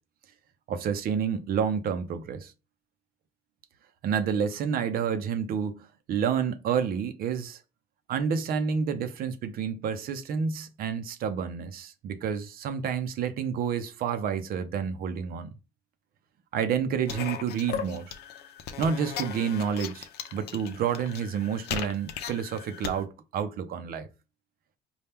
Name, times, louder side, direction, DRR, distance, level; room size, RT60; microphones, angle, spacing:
voice 1, 0.7-2.5 4.0-7.6 8.1-15.5 16.5-18.0 18.8-20.1 20.3-24.1, right 7 dB, 60° right, 0.6 m, -29 dB
sound 1, 17.1-23.0, left 8 dB, 75° left, 0.6 m, -37 dB
4.3 x 2.3 x 3.5 m
cardioid pair, 110°, 17 cm